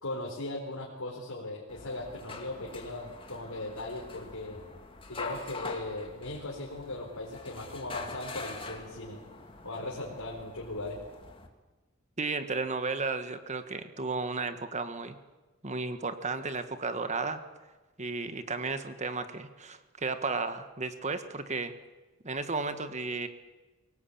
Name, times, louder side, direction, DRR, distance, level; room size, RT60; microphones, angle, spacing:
voice 1, 0.0-4.6 5.1-9.2 9.6-11.0, left 2 dB, 85° left, -3 dB, 4.2 m, -38 dB
sound 1, 1.7-11.5, left 3 dB, 25° left, 2.3 m, -44 dB
voice 2, 12.2-15.2 15.6-17.4 18.0-21.7 22.2-23.3, right 4 dB, 35° right, 10 dB, 1.5 m, -33 dB
23.0 x 18.5 x 8.7 m, 1.2 s
head